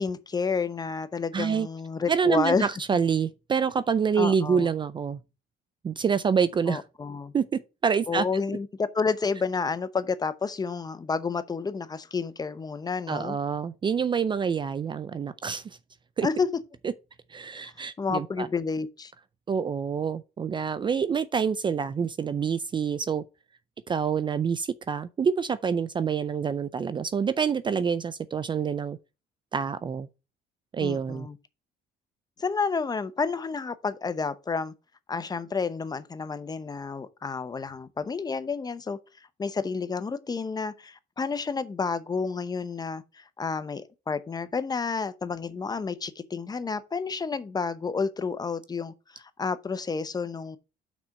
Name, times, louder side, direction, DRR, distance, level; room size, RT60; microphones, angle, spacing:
voice 1, 0.0-2.7 4.2-4.7 6.7-7.3 8.1-13.4 16.2-16.5 17.6-17.7 18.0-19.1 30.8-31.4 32.4-34.7 35.1-39.0 39.4-50.6, left 5 dB, 25° left, 0.7 m, -30 dB
voice 2, 1.3-1.7 2.1-5.2 5.8-6.8 7.3-8.2 13.1-15.8 16.2-16.3 16.8-16.9 17.3-18.5 19.5-23.2 23.9-29.0 29.5-30.1 30.7-31.3, right 6 dB, 30° right, 0.4 m, -27 dB
6.1 x 4.3 x 6.4 m
cardioid pair, 110°, 17 cm